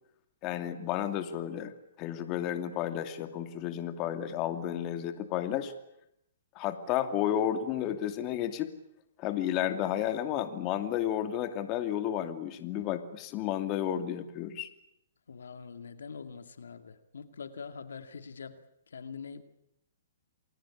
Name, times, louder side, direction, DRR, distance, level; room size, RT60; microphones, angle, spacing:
voice 1, 0.4-1.7 2.0-5.7 6.6-8.7 9.2-14.7, left 11 dB, 35° left, 8 dB, 2.5 m, -32 dB
voice 2, 15.3-18.6 18.9-19.4, left 5 dB, 90° left, 9 dB, 2.3 m, -44 dB
29.0 x 21.0 x 8.7 m, 0.79 s
hypercardioid pair, 140°, 0 cm